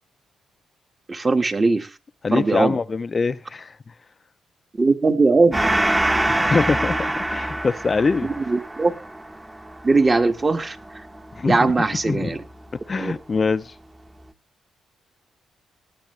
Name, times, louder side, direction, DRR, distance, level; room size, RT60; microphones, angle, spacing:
voice 1, 1.1-1.9 2.3-2.7 4.8-5.7 8.2-8.9 9.8-10.8 11.4-12.4 13.0-13.1, right 3 dB, 30° right, 1.6 m, -20 dB
voice 2, 2.2-3.8 6.3-8.3 11.4-11.7 12.1-12.4 12.9-13.7, left 4 dB, 40° left, 0.6 m, -23 dB
Gong, 5.5-12.5, right 1 dB, 15° right, 1.2 m, -25 dB
19.0 x 9.4 x 3.3 m
supercardioid pair, 65°, 0 cm